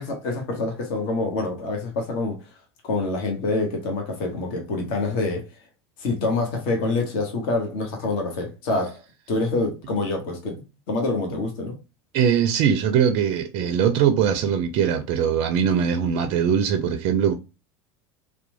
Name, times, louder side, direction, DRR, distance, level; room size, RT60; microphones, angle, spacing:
voice 1, 0.0-2.4 2.8-5.5 6.0-9.0 9.3-10.6 10.9-11.7, left 3 dB, 55° left, 0.8 m, -26 dB
voice 2, 12.1-17.3, right 8 dB, 45° right, 0.4 m, -21 dB
2.9 x 2.1 x 2.5 m
hypercardioid pair, 80°, 14 cm